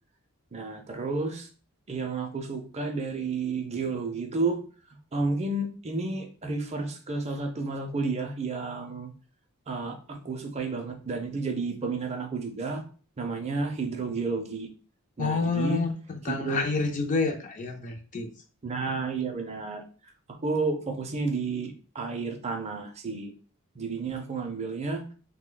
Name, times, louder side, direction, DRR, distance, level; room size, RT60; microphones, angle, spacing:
voice 1, 0.5-1.5 1.9-4.6 5.1-9.1 9.7-12.8 13.2-14.7 15.2-15.8 16.3-16.6 18.6-19.8 20.4-23.3 23.8-25.0, right 3 dB, 30° right, 4 dB, 0.5 m, -31 dB
voice 2, 15.2-18.3, left 4 dB, 35° left, 5 dB, 0.4 m, -28 dB
3.0 x 2.1 x 3.8 m, 0.39 s
head